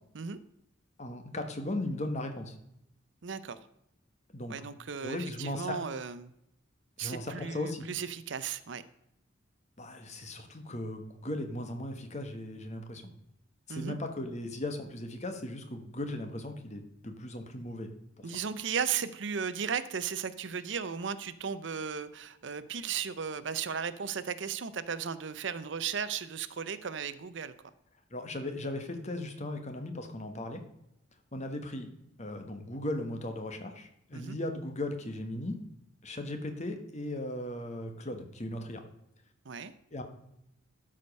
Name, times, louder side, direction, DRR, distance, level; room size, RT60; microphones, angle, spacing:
voice 1, 1.0-2.5 4.3-4.5 5.0-5.8 7.0-7.9 9.8-13.0 13.7-17.9 18.2-18.3 28.1-30.6 31.3-31.9 32.2-35.5 36.0-38.8 39.9-40.0, left 1 dB, 35° left, 6 dB, 1.3 m, -37 dB
voice 2, 3.2-3.6 4.5-6.3 7.0-8.8 13.7-14.0 18.2-27.5 34.1-34.4 39.4-39.7, right 7 dB, 60° right, 14 dB, 0.6 m, -35 dB
12.5 x 5.1 x 5.3 m, 0.81 s
head